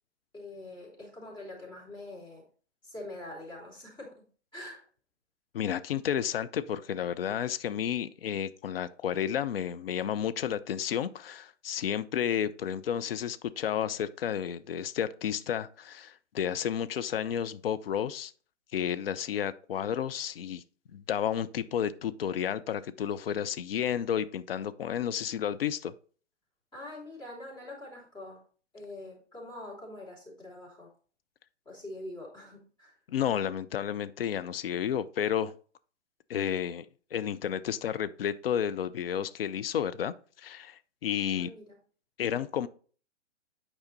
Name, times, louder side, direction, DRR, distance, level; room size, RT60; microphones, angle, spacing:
voice 1, 0.3-2.4 2.8-4.3 4.5-4.8 26.7-28.4 28.7-30.9 31.6-32.9 41.3-41.8, left 1 dB, 10° left, 3.3 m, -44 dB
voice 2, 5.5-18.3 18.7-20.6 20.9-25.9 33.1-35.5 36.3-36.9 37.1-41.5 42.2-42.7, left 9 dB, 50° left, 0.6 m, -31 dB
9.0 x 4.9 x 4.1 m
figure-of-eight pair, 120°, 36 cm